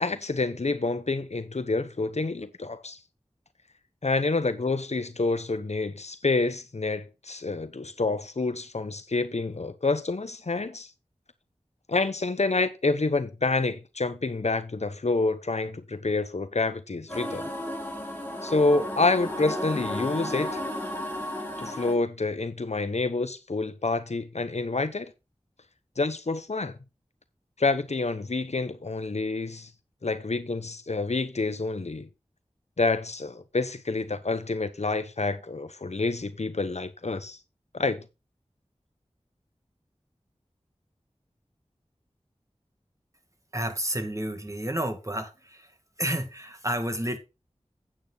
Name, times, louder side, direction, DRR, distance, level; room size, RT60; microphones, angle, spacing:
voice 1, 0.0-3.0 4.0-10.9 11.9-17.5 18.4-20.6 21.6-25.1 26.0-26.8 27.6-29.7 30.0-32.1 32.8-37.4 37.7-38.0, left 3 dB, 70° left, 1.0 m, -28 dB
sound 1, 17.1-21.9, left 1 dB, 15° left, 4.9 m, -33 dB
voice 2, 43.5-45.7 46.0-47.2, right 1 dB, 25° right, 2.3 m, -30 dB
8.8 x 8.8 x 4.0 m
wide cardioid pair, 45°, 12 cm